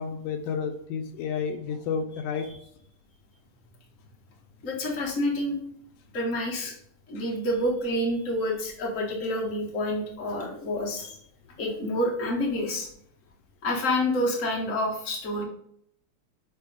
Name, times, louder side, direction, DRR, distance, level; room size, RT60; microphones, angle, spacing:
voice 1, 0.0-2.5, left 6 dB, 80° left, 6 dB, 2.2 m, -31 dB
voice 2, 4.6-5.6 6.1-6.8 7.1-11.2 11.6-12.9 13.6-15.4, left 1 dB, 30° left, -2 dB, 1.8 m, -28 dB
10.5 x 3.7 x 3.7 m, 0.66 s
omnidirectional pair, 3.7 m